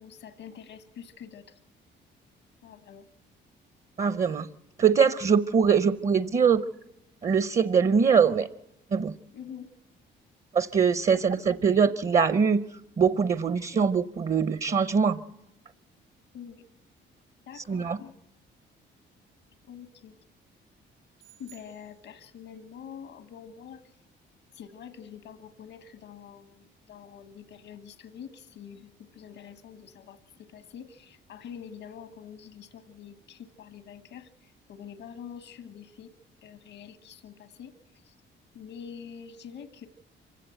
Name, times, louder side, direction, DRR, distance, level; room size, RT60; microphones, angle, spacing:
voice 1, 0.0-1.6 2.6-3.1 9.3-9.7 11.1-11.2 16.3-16.7 17.5-18.1 19.6-20.2 21.4-24.0 24.5-36.1 36.4-38.2 38.5-39.9, left 8 dB, 85° left, 8 dB, 1.4 m, -46 dB
voice 2, 4.0-4.5 4.8-6.6 7.2-8.5 8.9-9.1 10.5-12.6 13.0-15.2 17.5-18.0, right 6 dB, 35° right, 13 dB, 0.7 m, -23 dB
sound 1, 21.2-22.6, right 13 dB, 80° right, 5.3 m, -57 dB
26.0 x 16.0 x 7.9 m, 0.91 s
cardioid pair, 90°, 20 cm